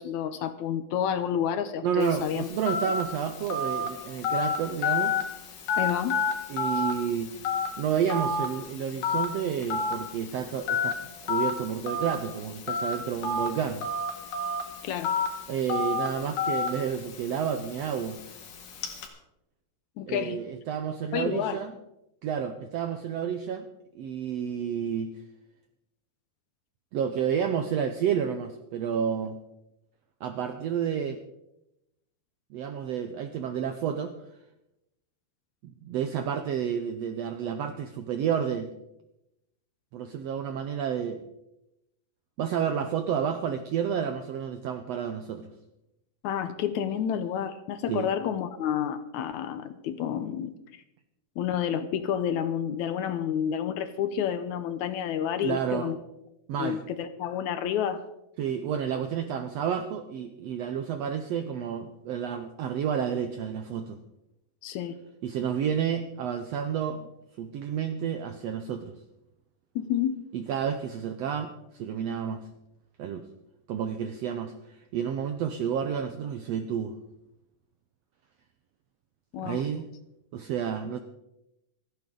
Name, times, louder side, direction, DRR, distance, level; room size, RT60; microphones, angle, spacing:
voice 1, 0.0-2.5 5.8-6.2 14.8-15.1 20.0-20.4 21.1-21.6 46.2-50.6 51.4-56.0 56.6-58.0 64.6-64.9 69.8-70.2 79.3-79.6, left 9 dB, 75° left, 11 dB, 2.0 m, -29 dB
voice 2, 1.8-5.2 6.5-7.3 7.8-13.8 15.5-18.2 20.1-21.7 22.2-23.7 23.9-25.2 26.9-29.4 30.2-31.2 32.5-34.1 35.6-38.7 39.9-41.3 42.4-45.5 47.9-48.1 55.4-55.9 56.5-56.8 58.4-64.0 65.2-67.1 67.4-68.9 70.3-72.5 73.0-73.2 73.7-76.9 79.4-79.9 80.3-81.0, right 8 dB, 80° right, 8 dB, 1.5 m, -30 dB
Telephone, 2.0-19.1, left 4 dB, 90° left, 3.5 m, -31 dB
27.0 x 9.2 x 3.8 m, 0.88 s
omnidirectional pair, 3.7 m